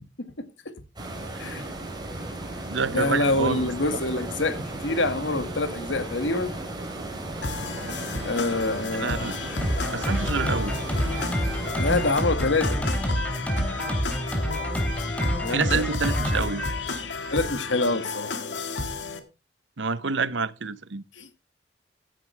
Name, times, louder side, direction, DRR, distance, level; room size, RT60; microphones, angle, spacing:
voice 1, 0.2-0.8 1.4-1.6 2.9-6.5 8.2-9.3 11.8-12.8 15.4-15.8 17.3-18.6 21.2-21.3, left 2 dB, 85° left, 2.0 m, -26 dB
sound 1, 1.0-12.1, right 2 dB, 20° right, 4.8 m, -35 dB
voice 2, 2.7-4.0 8.9-9.4 9.9-10.8 15.4-16.6 19.8-21.0, right 4 dB, 80° right, 0.9 m, -28 dB
sound 2, 7.4-19.2, left 3 dB, 70° left, 2.1 m, -33 dB
Drum kit, 9.6-17.4, equal, 5° left, 3.2 m, -28 dB
15.0 x 11.0 x 3.4 m
head